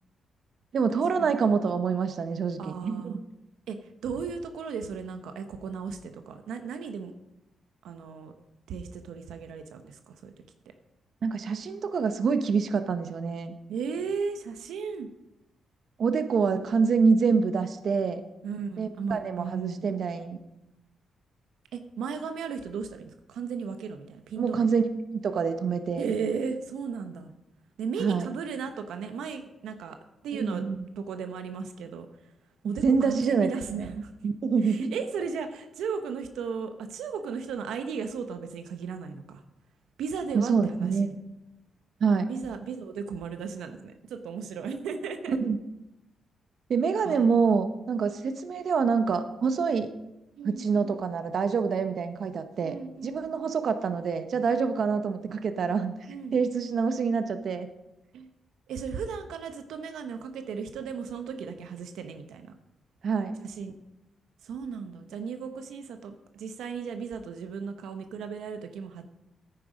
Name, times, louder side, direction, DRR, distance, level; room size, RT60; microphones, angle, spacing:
voice 1, 0.7-3.2 11.2-13.5 16.0-18.2 18.8-20.4 24.4-24.9 25.1-26.1 28.0-28.3 30.3-30.8 32.6-33.5 33.8-34.9 40.3-41.1 42.0-42.3 45.3-45.6 46.7-49.9 50.4-52.8 53.0-55.9 56.3-57.7 63.0-63.3, right 5 dB, 60° right, 9 dB, 1.0 m, -26 dB
voice 2, 2.6-3.2 3.7-7.1 7.8-8.3 8.7-10.3 13.7-15.1 18.4-19.8 21.7-24.7 25.9-27.3 27.8-30.0 30.2-30.6 31.0-32.1 32.6-34.1 34.6-39.4 40.0-41.1 42.3-45.4 47.0-47.3 50.4-51.0 52.6-53.4 54.5-54.7 56.1-56.3 58.1-58.3 58.7-62.5 63.4-63.7 64.4-69.0, right 6 dB, 85° right, 7 dB, 0.9 m, -35 dB
10.5 x 9.3 x 5.0 m, 0.90 s
cardioid pair, 85°, 0 cm